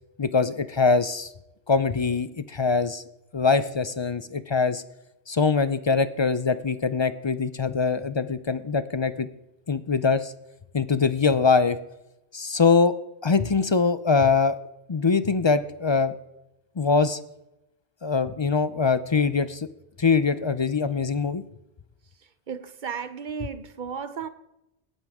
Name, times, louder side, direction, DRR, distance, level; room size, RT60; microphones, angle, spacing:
voice 1, 0.2-1.3 1.7-3.0 3.3-4.8 5.3-9.3 9.7-10.3 10.7-11.8 12.3-12.9 13.2-14.6 14.9-16.1 16.8-17.2 18.0-19.7 20.0-21.4, left 4 dB, 40° left, 0.4 m, -23 dB
voice 2, 22.5-24.3, right 6 dB, 50° right, 0.9 m, -34 dB
18.5 x 11.0 x 3.6 m
omnidirectional pair, 1.1 m